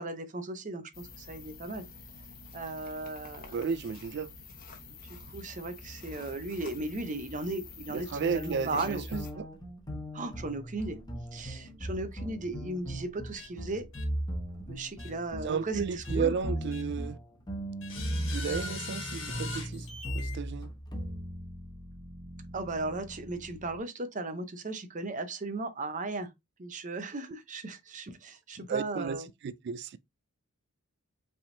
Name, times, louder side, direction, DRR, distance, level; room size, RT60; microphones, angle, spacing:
voice 1, 0.0-1.9 2.5-3.6 5.1-8.1 8.3-9.0 10.1-11.0 11.3-13.9 14.7-16.3 22.5-26.3 26.6-29.3, right 2 dB, 35° right, 0.7 m, -36 dB
sound 1, 0.9-9.3, left 3 dB, 40° left, 1.0 m, -47 dB
voice 2, 3.5-4.3 7.9-9.5 15.4-17.2 18.3-19.9 20.1-20.7 28.6-30.0, right 6 dB, 50° right, 0.3 m, -33 dB
sound 2, 8.2-23.8, right 1 dB, 20° left, 1.0 m, -38 dB
sound 3, 13.4-13.5 13.9-14.0 15.0-15.1 16.0-16.2 16.7-16.8 17.8-20.4, left 3 dB, 60° left, 1.5 m, -40 dB
5.2 x 3.5 x 2.6 m
head